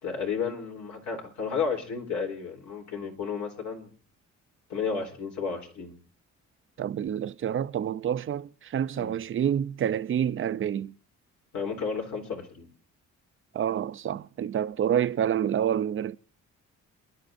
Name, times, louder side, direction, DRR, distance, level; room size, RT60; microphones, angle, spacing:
voice 1, 0.0-3.9 4.7-5.9 9.0-9.1 11.5-12.7, left 5 dB, 70° left, 3.7 m, -32 dB
voice 2, 6.8-10.9 13.5-16.2, right 9 dB, 45° right, 0.6 m, -28 dB
29.0 x 11.0 x 2.6 m
cardioid pair, 90°, 30 cm